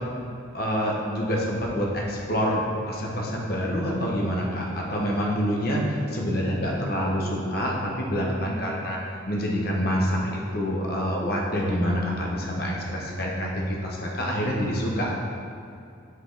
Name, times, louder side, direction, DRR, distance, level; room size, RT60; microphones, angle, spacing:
voice 1, 0.5-9.0 9.3-15.1, equal, 50° left, -3 dB, 1.0 m, -27 dB
5.9 x 5.4 x 3.9 m, 2.6 s
head